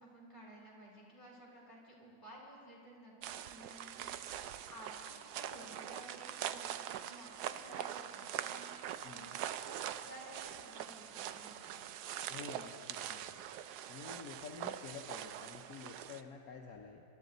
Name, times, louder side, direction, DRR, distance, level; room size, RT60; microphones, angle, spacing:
voice 1, 0.0-11.8, right 1 dB, 10° left, -6 dB, 3.9 m, -55 dB
sound 1, 3.2-16.2, right 10 dB, 85° right, 1.2 m, -43 dB
voice 2, 9.0-9.4 12.3-13.3 13.9-17.0, left 5 dB, 70° left, 2 dB, 1.3 m, -49 dB
26.0 x 12.0 x 4.0 m, 2.5 s
omnidirectional pair, 1.7 m